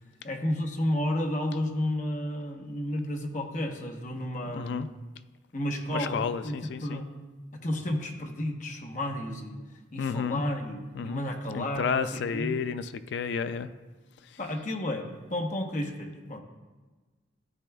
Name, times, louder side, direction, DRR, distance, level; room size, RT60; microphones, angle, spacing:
voice 1, 0.2-4.9 5.5-6.5 6.8-7.1 7.6-9.6 9.9-12.6 13.4-13.6 14.4-16.4, left 1 dB, 45° left, 2 dB, 1.0 m, -32 dB
voice 2, 4.5-4.9 5.9-7.0 10.0-10.4 10.9-11.3 11.5-13.7, left 6 dB, 70° left, 13 dB, 0.3 m, -31 dB
13.5 x 9.1 x 2.3 m, 1.3 s
head